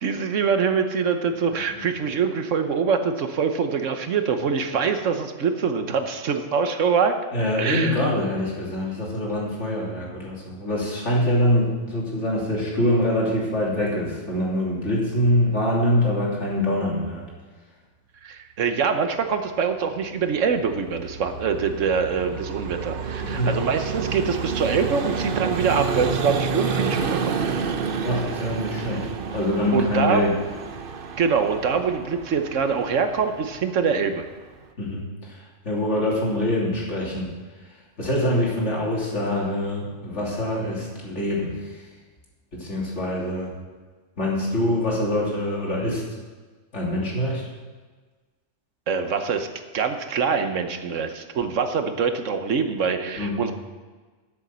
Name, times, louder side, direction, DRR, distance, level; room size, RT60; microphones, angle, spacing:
voice 1, 0.0-7.1 7.6-8.0 18.2-27.4 29.7-30.3 31.2-34.2 48.9-49.5 49.7-53.5, right 6 dB, 80° right, 7 dB, 1.3 m, -24 dB
voice 2, 7.3-17.3 23.2-23.5 28.0-29.1 29.3-30.3 34.8-37.3 38.0-41.8 42.5-43.5 44.2-46.0 46.7-47.4 53.2-53.4, left 1 dB, 65° left, -4 dB, 3.3 m, -24 dB
Vehicle, 20.0-34.7, right 5 dB, 50° right, 0.8 m, -30 dB
11.5 x 7.6 x 6.9 m, 1.4 s
omnidirectional pair, 1.3 m